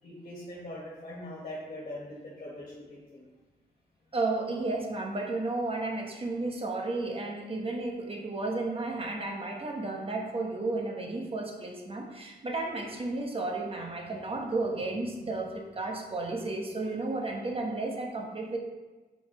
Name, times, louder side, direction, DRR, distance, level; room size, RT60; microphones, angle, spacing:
voice 1, 0.0-3.2, left 1 dB, 45° left, -5 dB, 2.1 m, -42 dB
voice 2, 4.1-18.6, right 2 dB, 35° right, 1 dB, 1.3 m, -33 dB
5.7 x 5.6 x 4.3 m, 1.2 s
cardioid pair, 95°, 17 cm